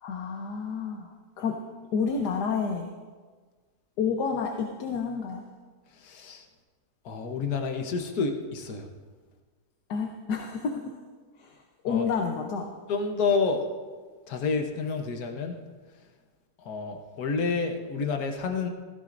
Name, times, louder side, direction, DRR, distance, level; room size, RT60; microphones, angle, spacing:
voice 1, 0.0-1.6 1.9-2.9 4.0-5.4 9.9-10.8 11.4-11.6 11.8-12.7, left 5 dB, 85° left, 2 dB, 1.5 m, -29 dB
voice 2, 6.0-6.4 7.0-8.9 11.8-12.0 12.9-13.6 14.3-15.6 16.6-18.7, left 4 dB, 70° left, 4 dB, 1.6 m, -29 dB
16.0 x 15.0 x 2.6 m, 1.5 s
omnidirectional pair, 1.7 m